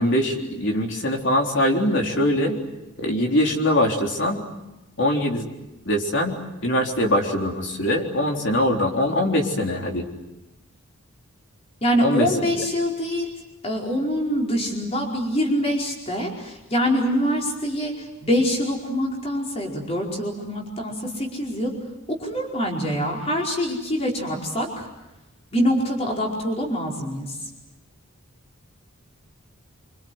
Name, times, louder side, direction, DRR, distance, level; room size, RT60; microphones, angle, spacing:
voice 1, 0.0-2.6 3.0-4.4 5.0-5.5 5.9-10.1 12.0-12.3, left 1 dB, 55° left, 1 dB, 3.8 m, -22 dB
voice 2, 11.8-13.3 13.6-21.7 22.2-24.9 25.5-27.4, equal, 30° left, -1 dB, 4.9 m, -25 dB
26.0 x 25.5 x 8.0 m, 0.98 s
head